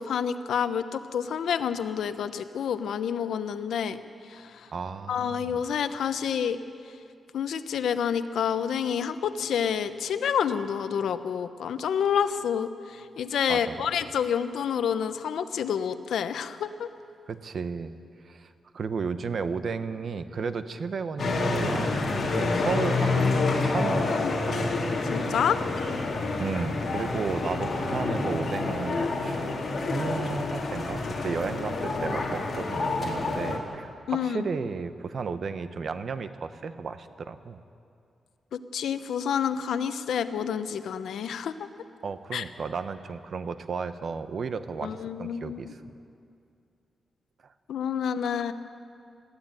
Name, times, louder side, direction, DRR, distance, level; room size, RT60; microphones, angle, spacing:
voice 1, 0.0-4.0 4.3-4.7 5.1-6.6 7.3-16.9 24.1-24.4 25.1-25.6 34.1-34.5 38.5-41.7 42.3-42.4 44.8-45.7 47.7-48.5, left 8 dB, 90° left, 11 dB, 0.9 m, -28 dB
voice 2, 4.7-5.6 13.5-13.7 17.3-17.9 18.2-24.8 26.4-29.5 29.8-37.6 42.0-45.8 48.3-48.4, right 5 dB, 55° right, 10 dB, 1.0 m, -34 dB
sound 1, 21.2-33.6, left 3 dB, 50° left, 3.1 m, -28 dB
21.5 x 15.0 x 9.0 m, 2.4 s
wide cardioid pair, 125°, 0 cm